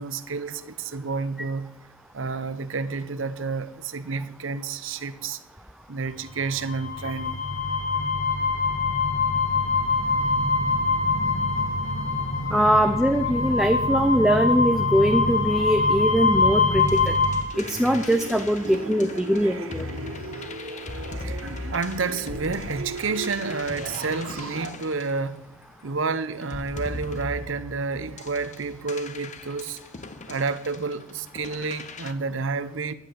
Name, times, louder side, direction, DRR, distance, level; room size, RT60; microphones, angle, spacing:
voice 1, 0.0-1.8 2.1-5.4 5.9-7.4 21.2-25.6 25.8-29.8 30.3-32.9, right 4 dB, 70° right, 0.8 m, -30 dB
sound 1, 6.4-17.4, left 3 dB, 75° left, 1.8 m, -24 dB
voice 2, 12.5-17.1 17.6-19.9, equal, ahead, 0.6 m, -22 dB
sound 2, 16.8-25.8 26.4-32.1, left 3 dB, 35° left, 0.7 m, -39 dB
sound 3, 17.5-24.7, right 3 dB, 85° right, 1.7 m, -37 dB
10.5 x 8.1 x 9.4 m
head